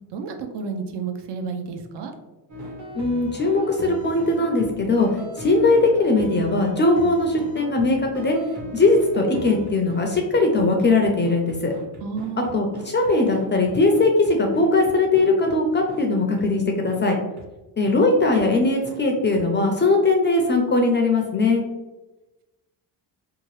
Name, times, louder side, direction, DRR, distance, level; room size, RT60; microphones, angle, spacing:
voice 1, 0.1-2.1 12.0-12.6, right 5 dB, 60° right, 5 dB, 0.6 m, -31 dB
sound 1, 2.5-15.6 15.9-16.0 16.4-16.5 16.9-17.0 17.4-17.5 17.9-18.0 18.4-18.5 18.8-19.0 19.3-19.4, left 1 dB, 40° right, 0.9 m, -38 dB
voice 2, 2.9-5.1 5.4-8.4 8.7-11.7 12.5-17.2 17.8-21.6, left 2 dB, 25° left, 2 dB, 0.4 m, -20 dB
2.8 x 2.3 x 3.0 m, 1.1 s
cardioid pair, 100°, 47 cm